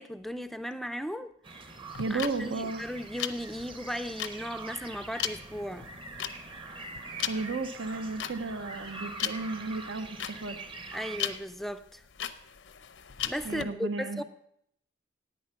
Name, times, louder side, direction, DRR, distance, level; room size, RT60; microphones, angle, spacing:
voice 1, 0.0-1.3 2.1-5.9 10.9-12.0 13.3-14.2, equal, ahead, 0.4 m, -36 dB
sound 1, 1.4-11.4, right 3 dB, 25° right, 0.9 m, -44 dB
sound 2, 1.9-13.6, left 10 dB, 75° left, 0.6 m, -37 dB
voice 2, 2.0-2.8 7.3-10.6 13.4-14.2, right 3 dB, 75° right, 0.8 m, -34 dB
10.5 x 8.9 x 5.8 m
head